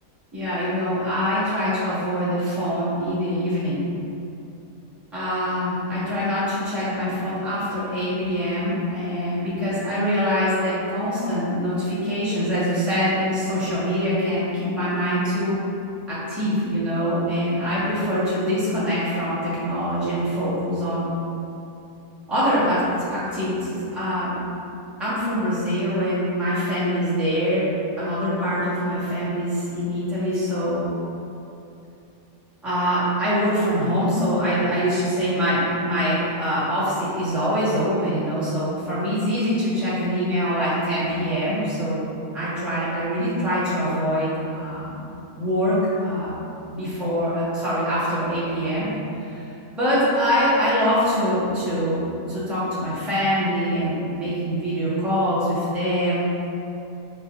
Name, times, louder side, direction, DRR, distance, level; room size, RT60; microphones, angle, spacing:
voice 1, 0.3-3.8 5.1-15.6 16.1-21.1 22.3-24.3 25.0-27.7 28.0-30.8 32.6-42.1 42.3-45.0 45.3-45.7 46.0-46.3 46.7-49.4 49.8-56.2, equal, ahead, -12 dB, 1.0 m, -24 dB
6.7 x 2.4 x 2.4 m, 2.7 s
omnidirectional pair, 1.6 m